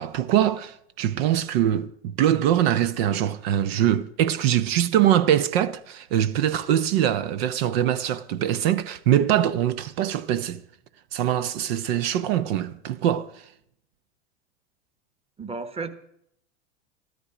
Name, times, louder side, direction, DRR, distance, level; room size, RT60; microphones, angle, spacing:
voice 1, 0.0-10.6 11.1-13.5, right 11 dB, 60° right, 0.9 m, -23 dB
voice 2, 15.4-15.9, right 4 dB, 15° right, 1.3 m, -32 dB
14.0 x 13.0 x 5.0 m
hypercardioid pair, 95°, 34 cm